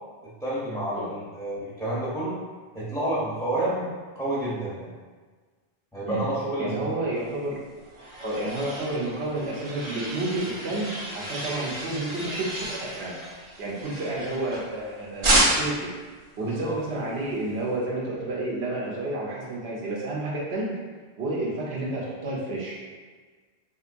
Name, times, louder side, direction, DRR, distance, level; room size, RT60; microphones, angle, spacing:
voice 1, 0.4-2.4 2.7-3.9 4.2-4.9 5.9-6.8 16.4-16.7, right 1 dB, 5° left, -9 dB, 0.7 m, -29 dB
voice 2, 6.6-7.6 8.2-13.2 13.6-15.9 16.4-20.8 21.2-22.8, right 2 dB, 80° right, -5 dB, 1.0 m, -30 dB
sound 1, 7.5-14.8 15.2-15.9, right 1 dB, 40° right, 0.5 m, -30 dB
3.6 x 2.8 x 2.5 m, 1.4 s
omnidirectional pair, 1.1 m